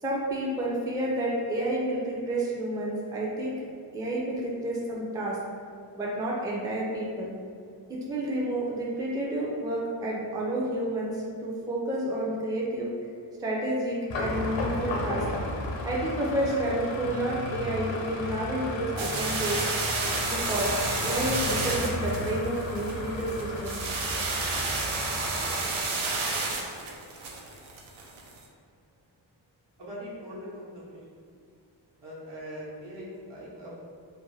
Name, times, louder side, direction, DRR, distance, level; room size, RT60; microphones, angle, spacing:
voice 1, 0.0-3.6 3.9-5.4 5.9-7.3 7.9-12.9 13.4-15.2 15.8-19.6 20.3-23.8, right 1 dB, 10° right, -4 dB, 0.4 m, -30 dB
sound 1, 14.1-25.5, left 2 dB, 75° left, 0.6 m, -34 dB
sound 2, 19.0-28.4, right 3 dB, 85° right, 0.6 m, -31 dB
voice 2, 29.8-31.2 32.0-33.8, equal, 65° right, -7 dB, 1.0 m, -41 dB
2.6 x 2.1 x 3.0 m, 2.3 s
wide cardioid pair, 80°, 46 cm